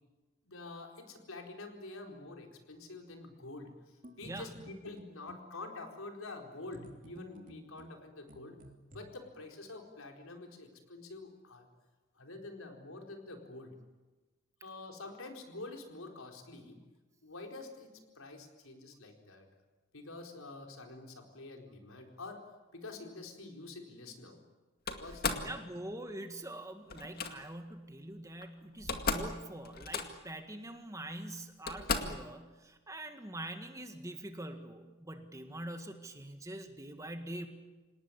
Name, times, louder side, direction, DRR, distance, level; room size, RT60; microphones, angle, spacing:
voice 1, 0.4-8.6 8.9-11.7 12.2-13.7 14.6-16.8 17.2-17.9 18.2-19.5 19.9-22.5 22.7-24.4 25.0-25.5, left 2 dB, 90° left, 3 dB, 4.3 m, -47 dB
sound 1, 4.0-5.5 6.7-9.0, right 1 dB, 40° right, 3.1 m, -52 dB
Slam, 24.9-25.5 26.9-27.3 28.4-28.5 28.7-29.3 29.6-30.3 31.1-31.2 31.7-32.2, left 4 dB, 45° left, 2.2 m, -35 dB
voice 2, 25.4-37.5, right 1 dB, 15° right, 6 dB, 1.9 m, -44 dB
27.0 x 19.0 x 9.9 m, 1.2 s
head